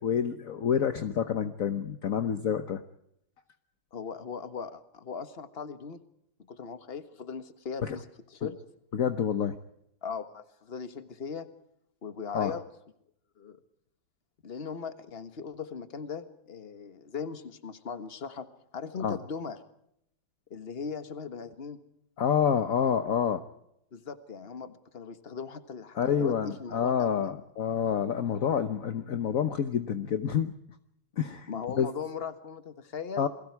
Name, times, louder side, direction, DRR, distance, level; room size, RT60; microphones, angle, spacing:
voice 1, 0.0-2.8 7.8-8.0 8.9-9.6 12.3-12.6 19.0-19.2 22.2-23.4 25.9-30.5 31.2-31.5 31.8-31.9 33.2-33.3, left 8 dB, 55° left, 9 dB, 1.3 m, -28 dB
voice 2, 3.9-6.0 6.5-8.0 8.3-8.6 10.0-11.5 12.0-12.6 13.4-13.6 14.4-18.5 18.7-19.6 20.5-21.8 23.9-27.3 31.5-33.3, left 6 dB, 35° left, 10 dB, 1.6 m, -39 dB
29.0 x 22.0 x 4.7 m, 0.77 s
omnidirectional pair, 1.9 m